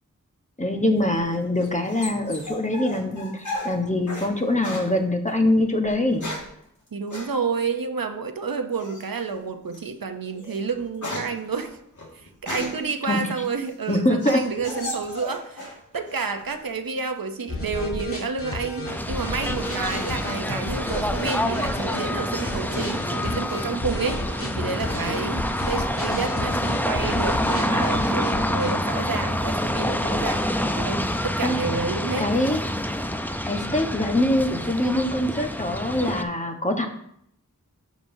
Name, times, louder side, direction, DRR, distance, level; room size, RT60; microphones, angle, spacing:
voice 1, 0.6-6.3 13.1-13.3 13.9-14.4 31.4-31.6 32.2-32.6 33.4-36.9, left 1 dB, 20° left, 3 dB, 1.1 m, -23 dB
sound 1, 1.0-4.3 4.6-4.9 5.8-6.6 7.1-7.3 8.8-9.2 9.7-9.9 10.3-12.9 13.4-15.8 16.1-16.7, left 1 dB, 60° left, 1.9 m, -35 dB
voice 2, 6.9-11.8 12.1-24.2 24.6-30.4 30.8-32.3, right 5 dB, 80° right, 7 dB, 0.8 m, -30 dB
sound 2, 17.5-28.7, left 1 dB, 40° left, 1.8 m, -32 dB
sound 3, 18.8-36.2, left 1 dB, 5° left, 0.5 m, -27 dB
11.5 x 5.2 x 2.7 m, 0.71 s
wide cardioid pair, 45°, 34 cm